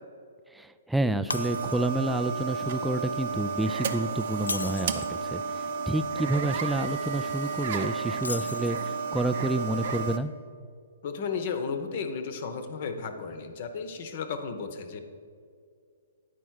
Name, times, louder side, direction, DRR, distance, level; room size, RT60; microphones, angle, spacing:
voice 1, 0.5-10.3, right 1 dB, 5° right, 11 dB, 0.3 m, -29 dB
Shatter, 1.3-2.1 2.5-2.7 4.3-5.2 8.2-9.1, left 3 dB, 90° left, 0.3 m, -37 dB
sound 1, 1.3-10.2, right 5 dB, 55° right, 0.7 m, -32 dB
voice 2, 11.0-15.0, left 5 dB, 50° left, 8 dB, 0.9 m, -34 dB
9.8 x 4.5 x 6.3 m, 2.3 s
hypercardioid pair, 130°, 0 cm